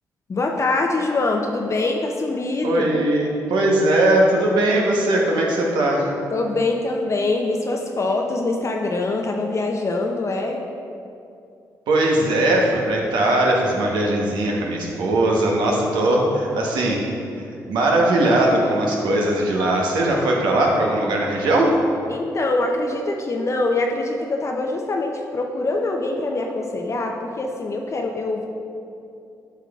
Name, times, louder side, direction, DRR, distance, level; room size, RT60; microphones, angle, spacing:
voice 1, 0.3-2.8 6.3-10.6 22.1-28.5, left 2 dB, 40° left, 2 dB, 0.5 m, -24 dB
voice 2, 2.6-6.1 11.9-17.0 17.7-21.8, right 1 dB, 80° right, -1 dB, 1.0 m, -19 dB
8.1 x 5.7 x 2.4 m, 2.6 s
supercardioid pair, 60°, 8 cm